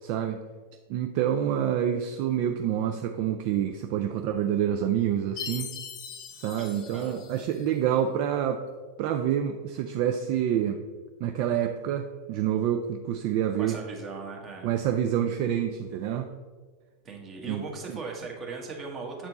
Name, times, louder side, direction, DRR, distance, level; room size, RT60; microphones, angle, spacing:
voice 1, 0.0-0.4 0.9-5.7 6.3-8.6 9.0-10.8 11.2-13.8 14.6-16.3 17.5-18.0, right 10 dB, 45° right, 5 dB, 0.4 m, -27 dB
Chime, 5.4-7.8, left 7 dB, 35° left, 0.7 m, -40 dB
voice 2, 13.6-14.7 17.0-19.3, right 4 dB, 25° right, 1 dB, 1.3 m, -38 dB
7.5 x 4.3 x 4.0 m, 1.5 s
figure-of-eight pair, 90°, 0 cm